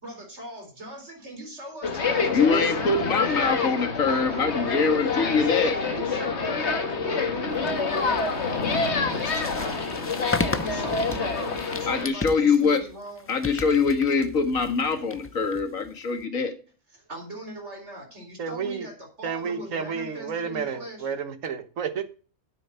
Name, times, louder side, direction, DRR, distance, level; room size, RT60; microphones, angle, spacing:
voice 1, 0.0-2.9 3.2-5.5 5.7-9.8 10.5-13.3 16.9-21.1, right 1 dB, 55° right, 4.5 m, -41 dB
sound 1, 1.8-12.1, left 4 dB, 55° left, 1.8 m, -27 dB
voice 2, 2.2-5.7 11.9-12.8 13.3-16.5, left 5 dB, 85° left, 2.1 m, -23 dB
sound 2, 7.6-16.2, left 2 dB, 20° left, 0.3 m, -36 dB
voice 3, 18.4-18.9 19.2-22.0, right 6 dB, 75° right, 1.6 m, -31 dB
9.6 x 7.8 x 5.6 m
omnidirectional pair, 1.4 m